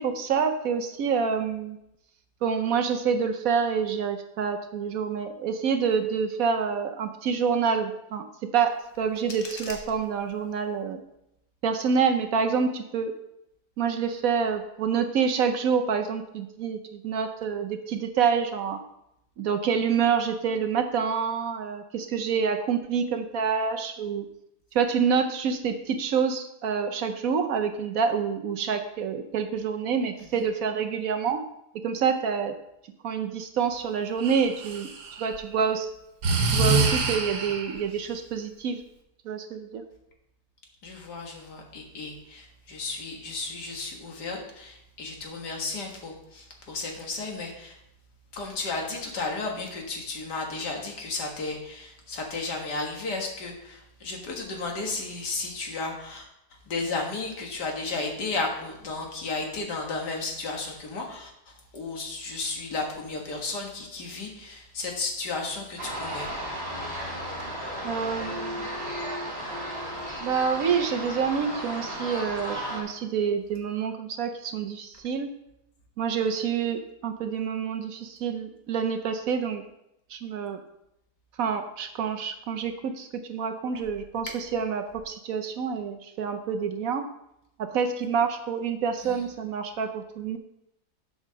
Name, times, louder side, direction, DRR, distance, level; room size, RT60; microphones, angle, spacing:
voice 1, 0.0-1.8 2.4-11.0 11.6-13.1 13.8-18.8 19.4-24.3 24.7-31.4 31.7-32.6 33.0-34.9 35.2-35.9 36.5-38.8 39.2-39.8 67.8-68.7 70.2-75.3 76.0-79.6 80.1-80.6 81.4-87.1 87.6-90.4, right 6 dB, 65° right, 6 dB, 1.0 m, -27 dB
sound 1, 8.7-10.7, left 3 dB, 40° left, 1.0 m, -44 dB
Breathing, 34.2-35.4 36.2-37.8, right 3 dB, 90° right, 1.7 m, -25 dB
voice 2, 40.8-47.8 48.3-56.2 56.7-66.3 89.0-89.2, left 3 dB, 80° left, 1 dB, 2.1 m, -33 dB
sound 2, 65.8-72.8, equal, 15° right, 2.4 m, -34 dB
7.6 x 5.1 x 6.2 m, 0.83 s
omnidirectional pair, 1.8 m